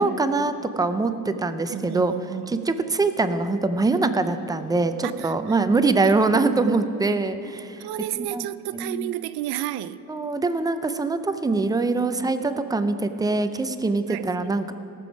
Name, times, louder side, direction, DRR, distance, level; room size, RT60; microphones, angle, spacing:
voice 1, 0.0-2.1 2.5-7.9 8.2-8.5 8.7-9.2 10.1-14.7, right 3 dB, 10° right, 0.4 m, -23 dB
voice 2, 1.7-2.5 5.0-5.3 6.0-6.2 7.8-10.0 14.1-14.3, right 13 dB, 85° right, 0.6 m, -31 dB
18.0 x 6.9 x 5.1 m
cardioid pair, 145°, 37 cm